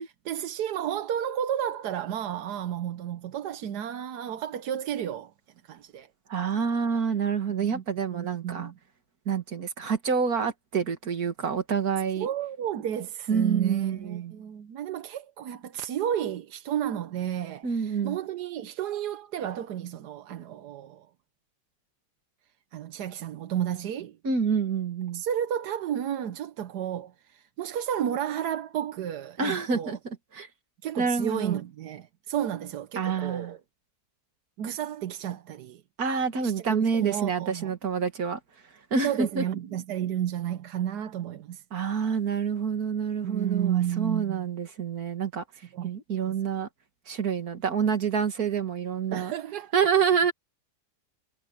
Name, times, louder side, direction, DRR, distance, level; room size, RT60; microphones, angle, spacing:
voice 1, 0.0-5.3 5.6-6.1 7.5-7.8 8.1-8.7 12.2-21.1 22.7-24.2 25.1-30.0 30.8-33.6 34.6-35.8 36.4-37.7 39.0-41.6 43.2-44.5 45.7-45.9 46.2-46.4 49.1-49.7, right 10 dB, 85° right, 1.4 m, -32 dB
voice 2, 6.3-8.7 9.3-12.3 13.3-14.4 17.6-18.2 24.2-25.2 29.4-30.5 31.0-31.6 33.0-33.5 36.0-38.4 38.9-39.4 41.7-45.4 45.8-46.7 47.1-49.3 49.7-50.3, right 6 dB, 65° right, 2.3 m, -27 dB
omnidirectional pair, 1.7 m